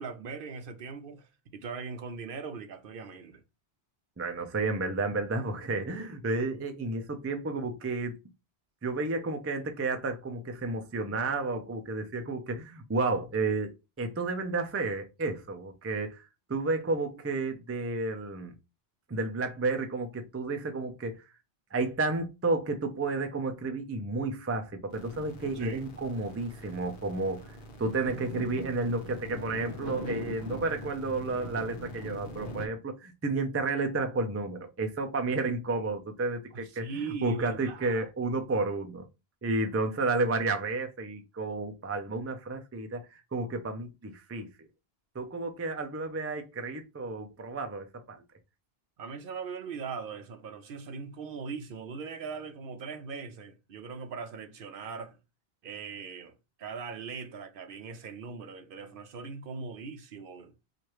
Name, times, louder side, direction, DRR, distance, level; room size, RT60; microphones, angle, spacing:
voice 1, 0.0-3.4 25.5-25.8 36.5-38.1 49.0-55.2 55.6-60.5, right 5 dB, 65° right, 0.7 m, -40 dB
voice 2, 4.2-8.2 8.8-16.2 16.5-18.5 19.1-21.2 21.7-27.5 27.8-39.1 39.4-44.7 45.1-48.2, right 3 dB, 20° right, 0.4 m, -31 dB
sound 1, 24.9-32.7, equal, 55° left, 1.0 m, -41 dB
4.6 x 2.5 x 3.0 m
omnidirectional pair, 1.1 m